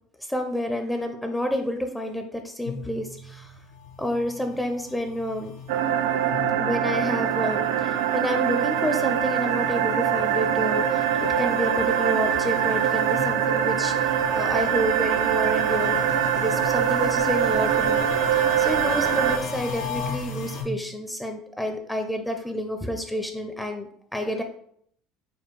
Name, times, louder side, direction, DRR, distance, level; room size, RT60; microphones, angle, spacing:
voice 1, 0.3-3.5 4.0-5.6 6.6-18.1 18.3-24.4, equal, 5° left, 5 dB, 0.5 m, -29 dB
sound 1, 2.7-20.6, left 4 dB, 75° left, 0.9 m, -36 dB
sound 2, 5.7-19.4, right 10 dB, 85° right, 0.3 m, -23 dB
4.3 x 2.3 x 4.6 m, 0.65 s
cardioid pair, 125°, 0 cm